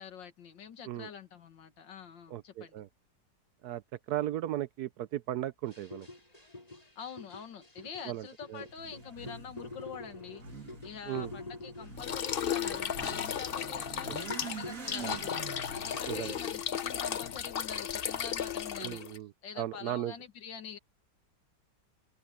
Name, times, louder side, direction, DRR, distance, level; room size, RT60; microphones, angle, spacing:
voice 1, 0.0-2.8 7.0-14.1 14.4-15.3 15.7-19.0 19.4-20.8, left 7 dB, 80° left, 2.3 m, -46 dB
voice 2, 2.3-2.9 3.6-3.8 4.1-6.1 8.1-8.6 11.1-11.3 15.0-15.2 16.1-16.4 18.8-19.3 19.6-20.1, right 13 dB, 70° right, 1.0 m, -36 dB
sound 1, 5.7-14.0 14.3-16.4, left 2 dB, 20° left, 3.8 m, -48 dB
Motorcycle / Accelerating revving vroom, 8.7-17.6, right 4 dB, 45° right, 2.8 m, -47 dB
sound 2, 12.0-19.2, left 8 dB, 60° left, 0.6 m, -35 dB
omnidirectional pair, 2.0 m